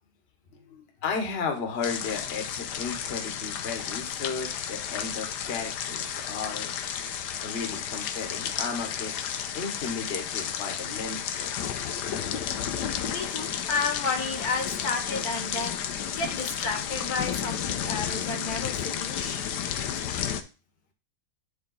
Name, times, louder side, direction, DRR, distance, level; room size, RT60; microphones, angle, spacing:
voice 1, 0.5-6.8 7.4-9.1 9.5-11.6, left 5 dB, 40° left, 4 dB, 1.2 m, -34 dB
sound 1, 1.8-20.4, left 8 dB, 80° left, 1.2 m, -32 dB
voice 2, 13.0-19.5, left 4 dB, 65° left, 4 dB, 1.6 m, -32 dB
9.7 x 3.5 x 3.9 m, 0.33 s
omnidirectional pair, 1.8 m